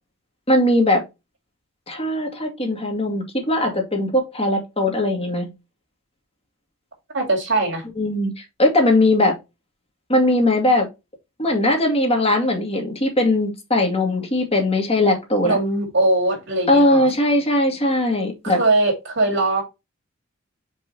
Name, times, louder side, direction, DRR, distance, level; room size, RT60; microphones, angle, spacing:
voice 1, 0.5-1.0 1.9-5.5 8.0-9.4 10.1-10.9 11.4-15.6 16.7-18.6, left 1 dB, 30° left, 2.3 m, -19 dB
voice 2, 7.1-7.8 15.4-17.1 18.4-19.6, right 2 dB, 60° right, 2.6 m, -21 dB
5.5 x 5.2 x 4.2 m
head